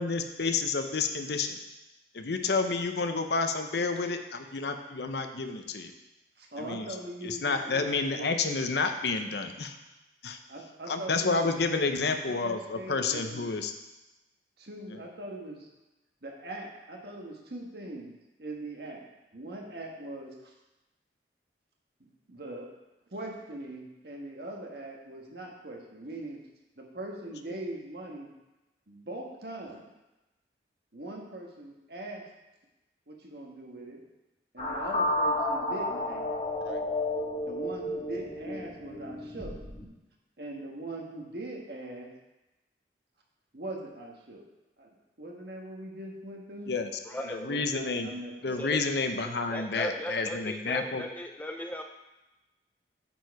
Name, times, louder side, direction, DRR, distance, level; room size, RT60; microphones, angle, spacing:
voice 1, 0.0-1.6 2.1-5.9 6.6-6.9 7.2-9.8 10.2-10.4 10.9-13.7 14.9-15.0 27.5-27.6 36.6-36.8 46.7-46.9 47.2-48.1 48.4-51.0, left 4 dB, 65° left, 7 dB, 0.7 m, -30 dB
voice 2, 6.4-8.6 10.5-11.5 12.3-13.5 14.6-15.7 16.2-18.1 18.4-19.0 19.3-20.5 22.0-22.7 23.1-26.4 26.8-28.3 28.9-29.9 30.9-32.2 33.1-34.0 34.5-36.3 37.5-39.6 40.4-42.1 43.5-44.4 44.8-46.7 47.5-48.6, right 1 dB, 60° right, 0 dB, 1.3 m, -41 dB
sound 1, 34.6-39.8, left 1 dB, 35° left, 1.6 m, -31 dB
voice 3, 47.1-47.5 48.6-48.8 49.5-51.8, left 1 dB, 10° left, 3 dB, 0.3 m, -37 dB
9.3 x 4.6 x 4.7 m, 1.0 s
head